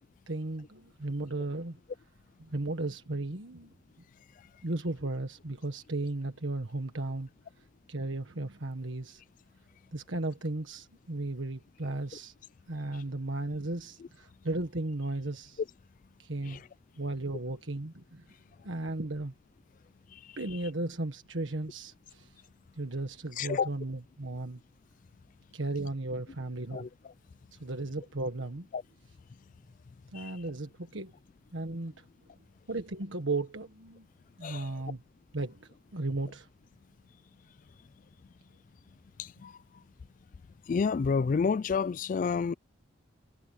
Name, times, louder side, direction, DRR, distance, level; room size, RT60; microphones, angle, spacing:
voice 1, 0.3-1.8 2.4-3.7 4.6-7.3 7.9-9.2 9.9-12.3 12.7-15.6 16.2-16.6 17.0-18.2 18.6-19.3 20.4-22.3 22.8-24.6 25.5-26.9 27.5-28.7 30.1-31.1 31.5-32.1 32.7-34.1 34.4-35.0 35.3-36.5, right 2 dB, 75° right, 1.5 m, -35 dB
voice 2, 20.1-20.6 23.4-23.7 26.7-27.1 28.7-28.8 30.1-30.4 34.4-34.7 39.2-39.8 40.6-42.5, left 5 dB, 40° left, 0.3 m, -31 dB
head